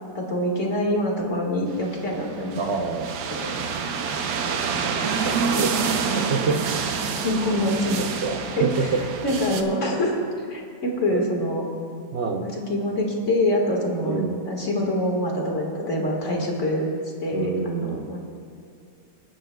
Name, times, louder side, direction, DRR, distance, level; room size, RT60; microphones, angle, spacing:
voice 1, 0.1-2.6 3.3-3.5 4.7-4.9 5.2-5.4 7.2-8.0 8.6-8.9 9.2-10.1 10.5-11.6 12.4-16.9 17.2-18.2, left 1 dB, 40° left, -1 dB, 2.0 m, -25 dB
sound 1, 1.8-9.6, right 5 dB, 70° right, 1.3 m, -27 dB
voice 2, 2.6-3.1 4.9-6.7 8.2-9.0 11.1-11.2 12.1-12.5 14.0-14.4 17.3-18.1, right 5 dB, 85° right, 2 dB, 0.5 m, -28 dB
26.5 x 9.6 x 2.3 m, 2.6 s
omnidirectional pair, 2.0 m